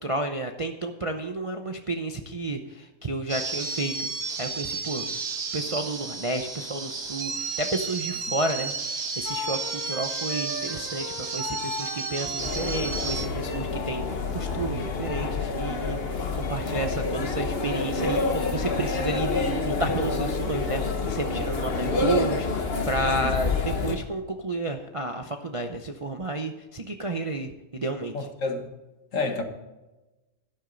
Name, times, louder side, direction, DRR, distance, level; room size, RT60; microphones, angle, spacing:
voice 1, 0.0-4.1 4.4-5.1 5.5-28.1, right 2 dB, 30° right, 5 dB, 0.6 m, -31 dB
sound 1, 3.3-13.3, right 4 dB, 85° right, 2.1 m, -32 dB
sound 2, 9.2-16.6 17.3-21.8, left 3 dB, 75° left, 4.3 m, -40 dB
sound 3, 12.4-24.0, left 4 dB, 45° left, 1.3 m, -28 dB
voice 2, 28.1-28.7 29.1-29.4, left 3 dB, 60° left, 5 dB, 1.9 m, -29 dB
12.5 x 11.5 x 3.9 m, 1.1 s
omnidirectional pair, 1.6 m